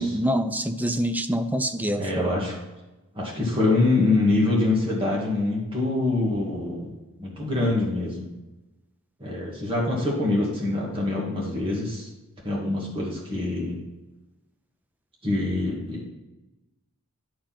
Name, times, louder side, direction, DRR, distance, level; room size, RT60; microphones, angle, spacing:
voice 1, 0.0-2.3, equal, 5° right, 9 dB, 0.4 m, -26 dB
voice 2, 2.0-2.5 3.1-6.9 7.2-8.3 9.2-12.1 12.4-13.8 15.2-16.0, left 2 dB, 25° right, -4 dB, 2.1 m, -25 dB
11.5 x 4.6 x 6.0 m, 1.1 s
head